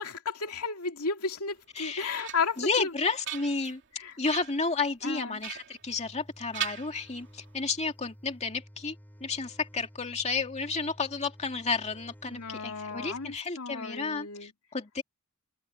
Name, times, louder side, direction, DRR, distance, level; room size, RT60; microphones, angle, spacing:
voice 1, 0.0-2.9 3.9-4.2 5.0-5.4 12.3-14.5, left 4 dB, 80° left, 2.6 m, -34 dB
sound 1, 1.7-2.7 3.1-3.8 4.2-4.7 5.4-6.3 6.5-7.5, right 10 dB, 55° right, 2.7 m, -39 dB
voice 2, 1.8-2.2 2.6-3.8 4.2-9.0 9.2-15.0, left 4 dB, 30° left, 2.4 m, -32 dB
sound 2, 5.8-13.4, equal, 10° left, 7.8 m, -53 dB
head